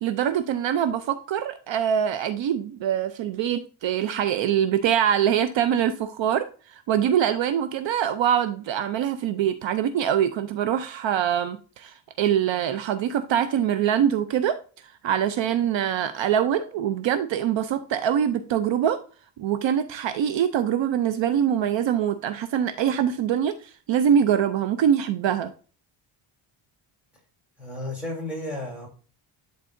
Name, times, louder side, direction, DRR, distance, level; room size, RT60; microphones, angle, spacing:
voice 1, 0.0-14.6 15.0-19.0 19.4-25.5, right 9 dB, 65° right, 0.6 m, -24 dB
voice 2, 27.6-28.9, left 1 dB, 5° right, 3.3 m, -33 dB
11.0 x 4.0 x 2.6 m
cardioid pair, 135°, 49 cm